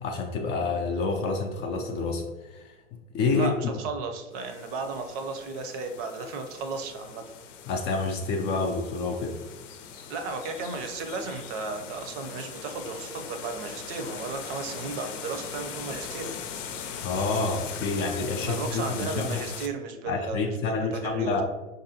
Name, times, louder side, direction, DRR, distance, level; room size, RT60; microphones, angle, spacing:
voice 1, 0.0-2.7 3.1-3.5 7.7-9.4 17.0-19.4 20.1-21.4, left 3 dB, 30° left, 2 dB, 0.4 m, -28 dB
voice 2, 3.3-7.3 10.1-16.3 18.4-21.4, right 4 dB, 50° right, 6 dB, 0.7 m, -34 dB
sound 1, 4.3-19.7, left 7 dB, 70° left, 0.6 m, -40 dB
4.8 x 2.7 x 2.8 m, 1.2 s
hypercardioid pair, 105°, 39 cm